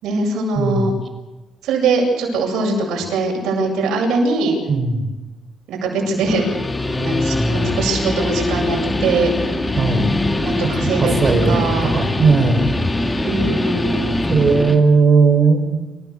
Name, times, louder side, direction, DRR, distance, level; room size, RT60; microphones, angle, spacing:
voice 1, 0.0-0.9 1.6-4.6 5.7-6.6 7.0-9.3 10.4-12.0 13.2-14.1, right 3 dB, 80° right, 0 dB, 7.9 m, -21 dB
voice 2, 0.5-0.9 4.7-5.1 9.8-10.1 11.0-12.7 14.3-15.8, right 4 dB, 40° right, 6 dB, 4.8 m, -16 dB
Guitar, 6.1-14.8, left 2 dB, 20° left, 2.3 m, -22 dB
28.5 x 15.5 x 6.7 m, 1.1 s
cardioid pair, 90°, 0 cm